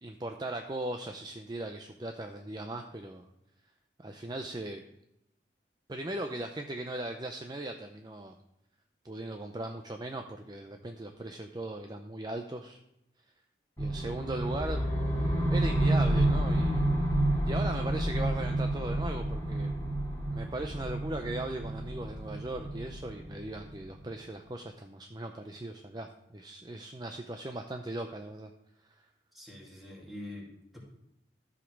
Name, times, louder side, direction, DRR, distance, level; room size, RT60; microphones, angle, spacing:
voice 1, 0.0-3.2 4.0-4.8 5.9-8.3 9.0-12.8 13.8-14.9 15.5-16.8 17.5-19.7 20.3-28.5, right 2 dB, 20° right, 5 dB, 0.5 m, -38 dB
sound 1, 13.8-23.8, right 1 dB, 15° left, 3.0 m, -29 dB
voice 2, 29.3-30.8, left 1 dB, ahead, -4 dB, 2.6 m, -45 dB
13.0 x 5.1 x 6.0 m, 0.84 s
head